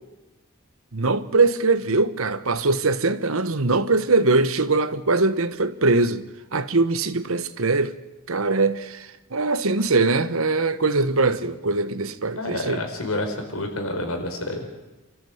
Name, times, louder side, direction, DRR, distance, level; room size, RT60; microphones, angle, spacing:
voice 1, 0.9-6.2 6.5-7.9 8.3-12.8, right 3 dB, 75° right, 1.2 m, -22 dB
voice 2, 12.4-14.6, left 1 dB, 80° left, 4.8 m, -28 dB
29.0 x 14.0 x 8.0 m
head